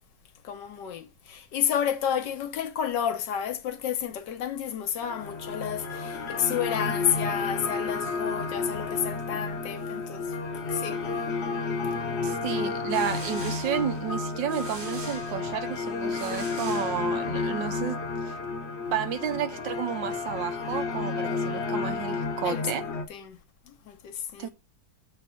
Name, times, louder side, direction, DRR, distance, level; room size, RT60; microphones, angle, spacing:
voice 1, 0.4-10.3 10.7-11.0 22.4-23.4 23.7-24.5, left 9 dB, 70° left, 1.4 m, -31 dB
sound 1, 5.0-23.0, left 4 dB, 45° left, 1.1 m, -31 dB
voice 2, 12.2-18.4 18.9-22.9 24.4-24.5, right 9 dB, 80° right, 1.5 m, -32 dB
sound 2, 12.6-17.5, right 2 dB, 40° right, 1.4 m, -44 dB
7.9 x 3.3 x 6.2 m
omnidirectional pair, 2.0 m